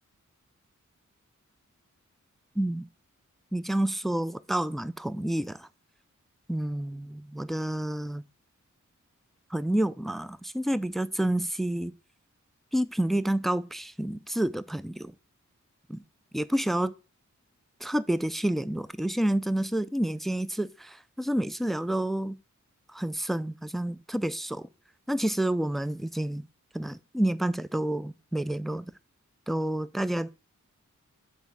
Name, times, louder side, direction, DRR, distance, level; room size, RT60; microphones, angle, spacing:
voice 1, 2.6-2.9 3.5-5.7 6.5-8.2 9.5-11.9 12.7-15.1 15.9-16.0 16.3-16.9 17.8-22.4 22.9-24.6 25.1-26.4 26.7-28.9 29.5-30.3, right 1 dB, ahead, 0.3 m, -29 dB
7.1 x 4.3 x 3.6 m
cardioid pair, 50°, 31 cm